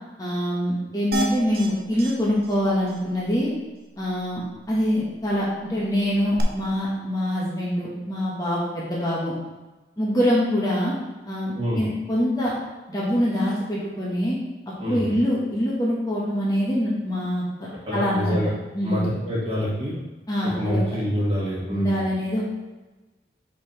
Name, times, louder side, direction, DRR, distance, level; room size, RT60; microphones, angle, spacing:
voice 1, 0.2-3.5 4.0-9.3 10.0-10.9 11.3-12.5 12.9-14.4 14.8-17.4 17.9-18.4 18.7-19.1 20.3-21.0 21.7-22.4, equal, 20° left, -6 dB, 1.4 m, -24 dB
sound 1, 1.1-1.7 2.0-2.1 2.4-2.5 2.9-3.0 6.4-6.5, right 2 dB, 60° right, 0.9 m, -28 dB
voice 2, 17.9-18.5 18.8-19.9 20.5-22.0, equal, 35° right, -7 dB, 2.0 m, -26 dB
6.7 x 5.5 x 3.4 m, 1.2 s
head